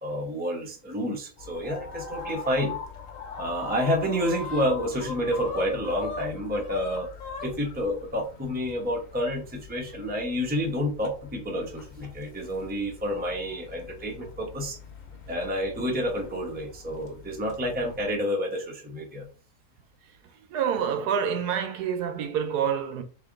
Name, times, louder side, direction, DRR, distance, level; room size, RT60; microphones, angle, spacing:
voice 1, 0.0-2.8 3.4-7.1 7.4-14.8 15.3-19.3, equal, 10° right, 0.7 m, -29 dB
sound 1, 1.4-18.1, left 5 dB, 60° left, 1.3 m, -41 dB
voice 2, 20.5-23.0, right 8 dB, 80° right, 1.2 m, -27 dB
3.6 x 3.3 x 3.6 m
omnidirectional pair, 1.7 m